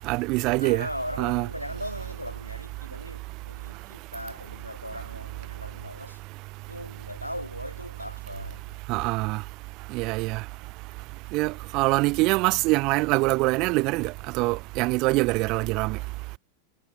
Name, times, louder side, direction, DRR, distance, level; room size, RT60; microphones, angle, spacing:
voice 1, 0.1-0.9 1.2-1.5 8.9-9.4 9.9-10.4 11.3-16.0, right 24 dB, 40° right, 0.8 m, -24 dB
voice 2, 0.6-6.2 6.7-8.8, left 1 dB, 90° left, 1.1 m, -38 dB
figure-of-eight pair, 90°, 0 cm